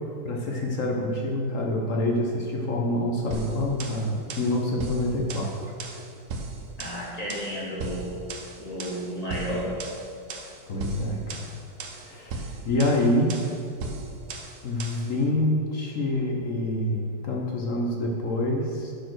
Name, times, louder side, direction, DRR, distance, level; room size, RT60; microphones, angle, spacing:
voice 1, 0.2-5.5 10.7-11.5 12.0-13.3 14.6-18.9, left 1 dB, 55° left, 0 dB, 0.9 m, -26 dB
sound 1, 3.3-15.1, right 3 dB, 85° right, 0.7 m, -37 dB
voice 2, 6.8-8.1 8.6-9.7, equal, 20° left, -6 dB, 1.9 m, -32 dB
9.8 x 4.4 x 6.1 m, 2.4 s
omnidirectional pair, 2.4 m